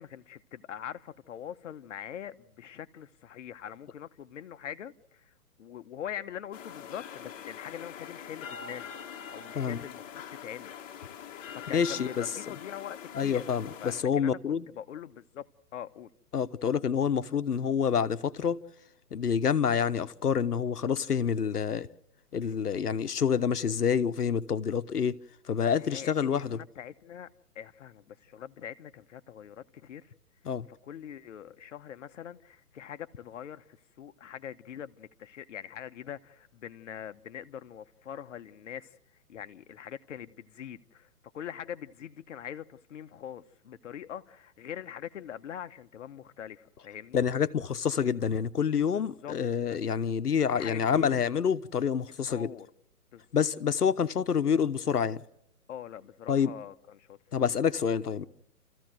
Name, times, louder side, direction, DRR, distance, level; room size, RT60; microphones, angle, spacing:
voice 1, 0.0-10.7 11.5-13.4 13.8-15.5 15.7-16.1 25.8-30.1 30.7-39.0 39.3-41.1 41.3-47.2 48.9-49.4 50.5-51.2 52.3-52.7 53.1-53.4 55.7-57.2, left 9 dB, 50° left, 1.1 m, -43 dB
sound 1, 6.5-14.0, left 8 dB, 20° left, 2.1 m, -44 dB
voice 2, 11.7-12.3 13.1-14.6 16.3-18.6 19.1-21.9 22.3-25.2 25.5-26.6 30.5-30.7 47.1-52.5 53.3-55.2 56.3-56.5 57.3-58.3, left 7 dB, 85° left, 1.1 m, -27 dB
29.0 x 14.5 x 7.7 m
hypercardioid pair, 140°, 45 cm